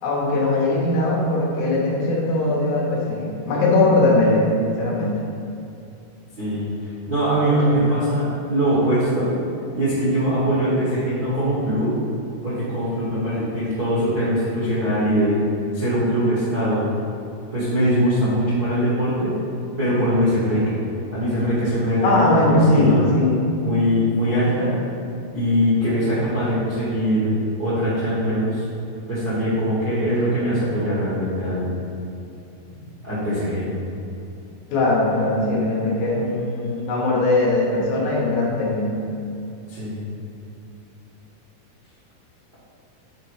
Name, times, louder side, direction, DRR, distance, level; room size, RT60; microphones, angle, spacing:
voice 1, 0.0-5.2 7.7-7.9 22.0-23.4 34.7-39.0, left 2 dB, 70° left, -4 dB, 2.7 m, -20 dB
voice 2, 7.0-9.3 9.7-11.9 12.4-15.4 15.7-16.9 17.5-19.3 19.8-20.8 21.1-23.0 23.6-24.7 25.3-27.3 27.6-28.6 29.1-31.7 33.0-33.7 39.7-40.0, equal, 65° right, -11 dB, 0.9 m, -22 dB
8.0 x 4.2 x 4.8 m, 2.7 s
omnidirectional pair, 4.8 m